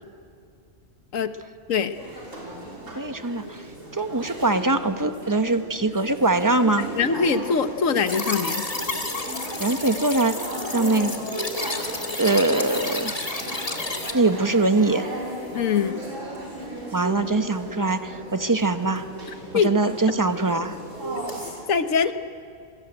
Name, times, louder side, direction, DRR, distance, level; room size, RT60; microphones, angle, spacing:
sound 1, 1.9-21.5, right 1 dB, 75° right, 6.0 m, -36 dB
voice 1, 2.9-3.6 3.9-6.9 9.6-10.5 10.7-11.1 12.2-13.1 14.1-15.1 16.9-19.0 19.5-20.8, right 2 dB, 15° right, 10 dB, 0.9 m, -22 dB
voice 2, 6.8-8.7 15.5-16.0 19.5-19.7 21.7-22.1, left 6 dB, 80° left, 10 dB, 1.6 m, -23 dB
sound 2, 8.1-14.1, left 2 dB, 30° left, 2.1 m, -30 dB
27.0 x 22.5 x 9.0 m, 2.3 s
omnidirectional pair, 1.4 m